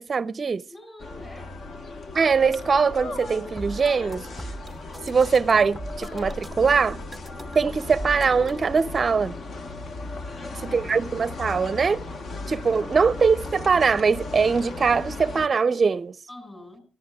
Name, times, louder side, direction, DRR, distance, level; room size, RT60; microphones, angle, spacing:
voice 1, 0.0-0.6 2.1-4.2 5.1-7.0 7.5-9.3 10.7-12.0 12.5-16.2, right 5 dB, 35° right, 0.5 m, -22 dB
voice 2, 0.7-1.5 10.3-11.3 16.3-16.8, left 1 dB, 25° left, 7.0 m, -45 dB
sound 1, 1.0-15.5, left 3 dB, 50° left, 1.1 m, -36 dB
sound 2, 3.5-8.8, right 1 dB, 5° left, 0.7 m, -39 dB
24.0 x 14.5 x 2.3 m
cardioid pair, 90°, 0 cm